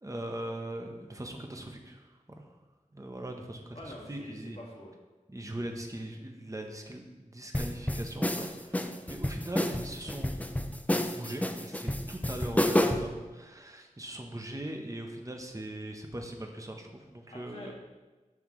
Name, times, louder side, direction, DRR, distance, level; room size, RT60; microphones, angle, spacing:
voice 1, 0.0-2.5 2.9-3.8 4.1-4.6 5.3-10.5 11.1-17.7, right 1 dB, 25° right, 3 dB, 0.9 m, -40 dB
voice 2, 3.7-4.9 8.9-9.1 17.3-17.7, left 1 dB, 45° left, -3 dB, 2.0 m, -46 dB
sound 1, 7.5-13.1, left 1 dB, 10° left, 0.6 m, -29 dB
11.0 x 5.8 x 3.2 m, 1.2 s
wide cardioid pair, 65°, 14 cm